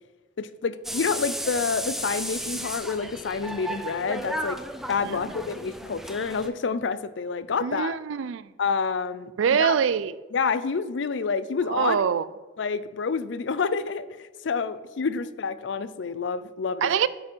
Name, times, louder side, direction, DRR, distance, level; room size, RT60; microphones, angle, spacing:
voice 1, 0.4-4.6 4.9-8.0 8.6-9.8 10.3-12.0 12.6-16.9, left 5 dB, 70° left, 0.5 m, -28 dB
sound 1, 0.8-6.5, right 1 dB, ahead, 0.4 m, -34 dB
voice 2, 7.6-8.5 9.4-10.1 11.7-12.2 16.8-17.1, right 7 dB, 85° right, 0.4 m, -23 dB
9.1 x 6.0 x 4.5 m
head